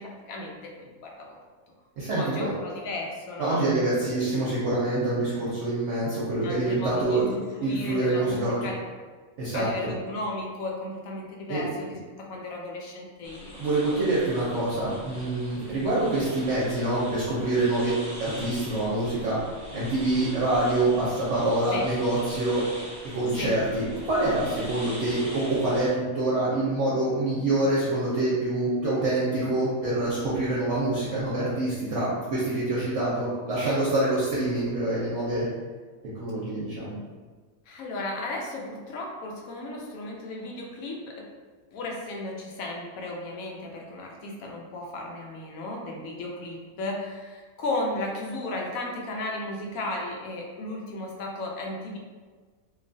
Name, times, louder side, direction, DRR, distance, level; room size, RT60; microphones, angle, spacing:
voice 1, 0.0-1.4 2.1-3.6 6.4-8.8 9.5-13.6 13.9-14.0 17.8-18.0 21.7-21.9 23.4-23.6 37.7-41.3 41.7-52.0, left 2 dB, 75° left, 0 dB, 1.0 m, -35 dB
voice 2, 2.0-2.5 3.4-7.2 7.6-8.6 9.4-9.9 11.5-11.6 13.6-19.4 19.7-22.6 23.1-35.5 36.1-37.0, right 2 dB, 60° right, -8 dB, 0.9 m, -26 dB
sound 1, 13.2-25.9, equal, 20° right, 0.5 m, -42 dB
2.9 x 2.3 x 2.6 m, 1.4 s
omnidirectional pair, 1.5 m